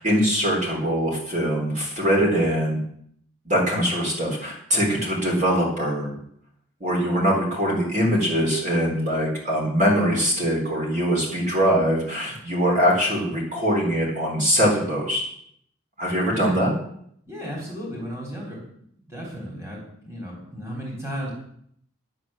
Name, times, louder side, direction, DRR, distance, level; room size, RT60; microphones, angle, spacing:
voice 1, 0.0-2.8 3.5-6.1 6.8-15.2 16.0-16.7, equal, 35° right, -2 dB, 3.9 m, -22 dB
voice 2, 17.3-18.6 19.1-21.3, equal, 15° right, -3 dB, 3.9 m, -34 dB
11.0 x 8.9 x 7.6 m, 0.67 s
head